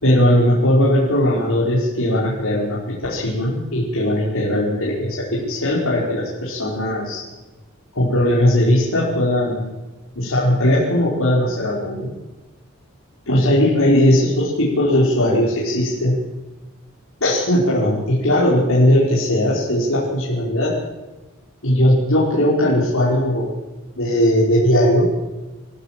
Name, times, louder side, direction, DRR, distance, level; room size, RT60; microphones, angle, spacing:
voice 1, 0.0-7.2 7.9-9.7 10.2-12.1 13.3-16.2 17.2-20.8 21.6-23.5 24.0-25.2, left 1 dB, 75° left, -6 dB, 5.1 m, -18 dB
27.5 x 15.0 x 7.7 m, 1.1 s
head